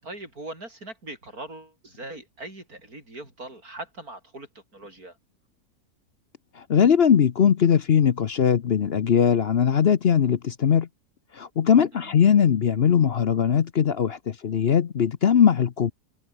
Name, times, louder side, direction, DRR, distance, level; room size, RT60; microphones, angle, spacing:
voice 1, 0.0-5.2 11.9-12.1, right 2 dB, 85° right, 7.9 m, -41 dB
voice 2, 6.6-10.9 11.3-15.9, left 8 dB, 50° left, 0.9 m, -20 dB
omnidirectional pair, 1.5 m